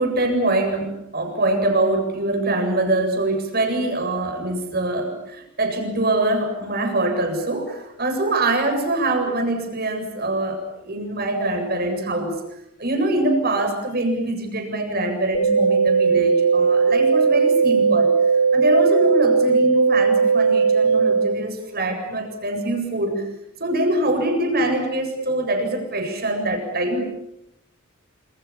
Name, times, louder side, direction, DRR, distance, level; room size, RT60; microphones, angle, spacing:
voice 1, 0.0-12.4 12.8-18.1 18.5-23.3 23.6-27.0, right 1 dB, 50° right, 5 dB, 7.9 m, -23 dB
sound 1, 15.3-21.3, right 5 dB, 75° left, 4.9 m, -18 dB
28.5 x 28.0 x 7.2 m, 0.82 s
head